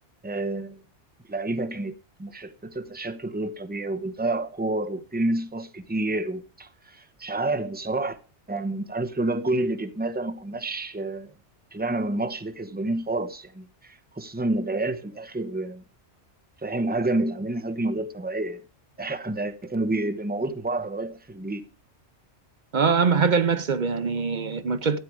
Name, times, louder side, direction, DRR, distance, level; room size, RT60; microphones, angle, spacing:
voice 1, 0.2-0.8 1.3-1.9 2.2-8.2 8.5-11.3 11.7-15.8 16.6-18.6 19.0-21.6, right 2 dB, 10° right, 0.8 m, -29 dB
voice 2, 22.7-25.0, right 5 dB, 45° right, 0.8 m, -23 dB
13.5 x 8.5 x 4.7 m
omnidirectional pair, 1.2 m